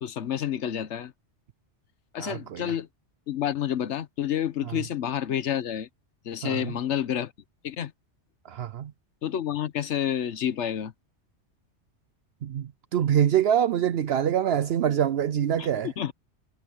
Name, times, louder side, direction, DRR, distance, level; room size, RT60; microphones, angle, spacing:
voice 1, 0.0-1.1 2.1-2.9 3.3-5.9 6.2-7.3 7.6-7.9 9.2-10.9 15.6-16.1, left 10 dB, 80° left, 1.1 m, -29 dB
voice 2, 2.2-2.6 6.4-6.8 8.4-8.9 12.4-15.9, right 9 dB, 65° right, 0.8 m, -25 dB
omnidirectional pair, 1.2 m